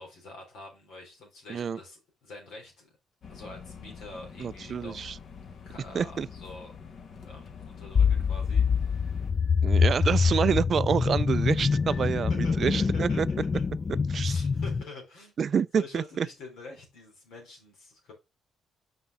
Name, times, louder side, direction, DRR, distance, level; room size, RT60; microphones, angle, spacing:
voice 1, 0.0-2.9 3.3-5.1 5.6-6.7 7.2-9.4 10.0-10.4 11.9-12.0 12.4-13.7 14.2-15.3 15.7-18.1, left 2 dB, 85° left, 3.8 m, -46 dB
sound 1, 3.2-9.3, left 6 dB, 60° left, 1.3 m, -46 dB
voice 2, 4.4-5.2 5.9-6.3 9.6-13.3 14.1-14.3 15.4-16.3, right 7 dB, 50° right, 0.3 m, -28 dB
sound 2, 7.9-14.8, left 5 dB, 35° left, 0.4 m, -25 dB
5.8 x 5.6 x 3.7 m
cardioid pair, 90°, 0 cm